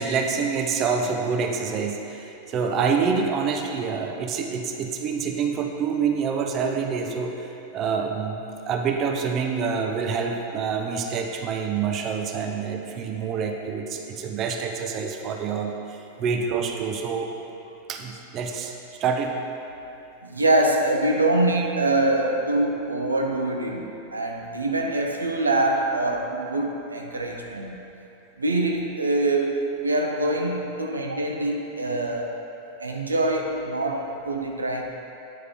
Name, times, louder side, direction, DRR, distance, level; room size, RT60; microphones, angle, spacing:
voice 1, 0.0-17.3 17.9-19.3, right 5 dB, 35° right, 3 dB, 0.6 m, -27 dB
voice 2, 20.2-27.8 28.4-32.3 32.8-34.8, right 2 dB, 80° right, 2 dB, 0.5 m, -24 dB
9.1 x 4.7 x 3.6 m, 2.9 s
figure-of-eight pair, 90°, 0 cm